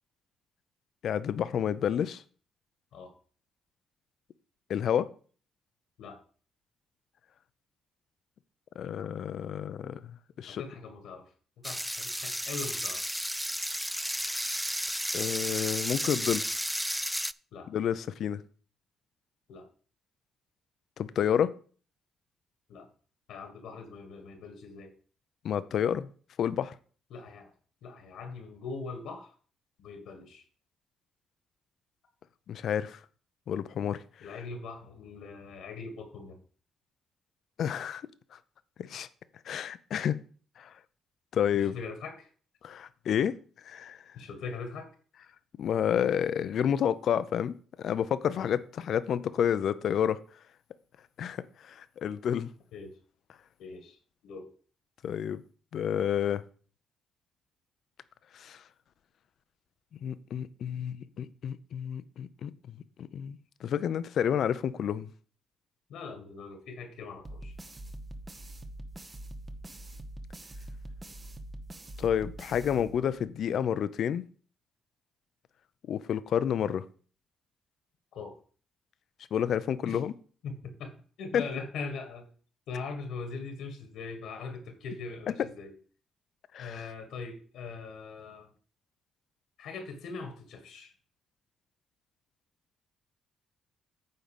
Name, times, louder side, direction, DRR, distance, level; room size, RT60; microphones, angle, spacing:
voice 1, 1.0-2.2 4.7-5.1 8.8-10.6 15.1-16.5 17.7-18.4 21.0-21.5 25.4-26.1 26.4-26.7 32.5-33.0 33.5-34.0 37.6-38.0 38.3-38.4 38.8-39.1 39.5-40.2 40.6-40.7 41.3-41.8 42.6-43.4 43.6-44.0 45.6-50.2 51.2-52.5 55.0-55.4 55.7-56.4 58.3-58.6 60.0-62.5 63.0-65.1 72.0-74.2 75.9-76.8 79.3-80.1 81.3-81.4 86.5-86.8, left 9 dB, 65° left, 0.6 m, -30 dB
voice 2, 10.5-11.3 11.6-13.1 17.5-17.7 19.5-19.7 22.7-22.9 23.3-24.9 27.1-27.5 27.8-29.3 29.8-30.4 34.2-36.4 41.5-42.3 44.1-44.9 48.3-48.5 52.7-53.0 53.6-54.0 54.2-54.5 65.9-67.6 72.7-72.9 78.1-78.4 79.8-80.0 80.4-82.3 82.7-85.8 86.6-88.5 89.6-90.9, left 4 dB, 80° left, 1.7 m, -41 dB
sound 1, 11.6-17.3, equal, ahead, 0.3 m, -33 dB
sound 2, 67.2-73.4, right 1 dB, 25° right, 1.0 m, -44 dB
9.5 x 3.9 x 7.1 m
cardioid pair, 90°, 0 cm